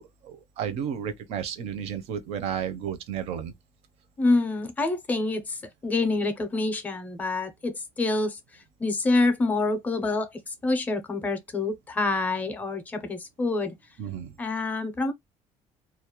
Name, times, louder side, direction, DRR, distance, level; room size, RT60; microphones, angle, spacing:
voice 1, 0.0-3.5 14.0-14.3, right 8 dB, 60° right, 0.5 m, -32 dB
voice 2, 4.2-13.8 14.4-15.1, left 3 dB, 15° left, 0.4 m, -27 dB
2.3 x 2.0 x 2.8 m
cardioid pair, 180°, 12 cm